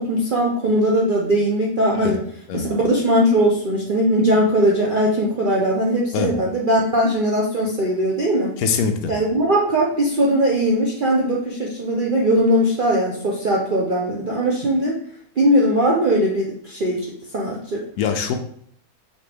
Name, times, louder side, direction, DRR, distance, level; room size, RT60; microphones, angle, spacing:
voice 1, 0.0-2.2 2.5-8.5 9.1-15.0 15.4-17.1 17.3-17.8, equal, 60° right, -3 dB, 0.5 m, -19 dB
voice 2, 8.6-9.1 18.0-18.4, left 6 dB, 75° left, 6 dB, 1.0 m, -23 dB
5.2 x 2.9 x 3.3 m, 0.62 s
omnidirectional pair, 1.7 m